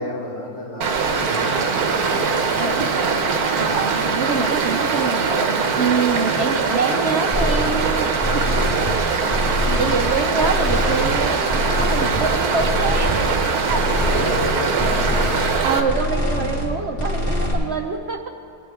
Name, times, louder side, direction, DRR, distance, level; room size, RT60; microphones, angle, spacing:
voice 1, 0.0-2.8 8.4-9.9 10.9-11.0 13.0-13.1 13.5-15.1 16.2-16.5, left 1 dB, 85° left, -6 dB, 3.2 m, -34 dB
Stream, 0.8-15.8, right 5 dB, 85° right, 1.5 m, -22 dB
voice 2, 2.6-3.0 3.5-8.5 9.7-13.1 13.6-13.8 15.6-18.3, right 4 dB, 55° right, 4 dB, 0.8 m, -25 dB
sound 1, 7.3-7.9 8.2-9.0 9.3-10.1 10.4-11.2 11.5-12.3 12.6-13.4 13.7-14.5 14.8-15.6 15.9-16.7 17.0-17.5, left 1 dB, 35° left, 2.0 m, -24 dB
20.5 x 9.1 x 3.6 m, 2.3 s
omnidirectional pair, 1.6 m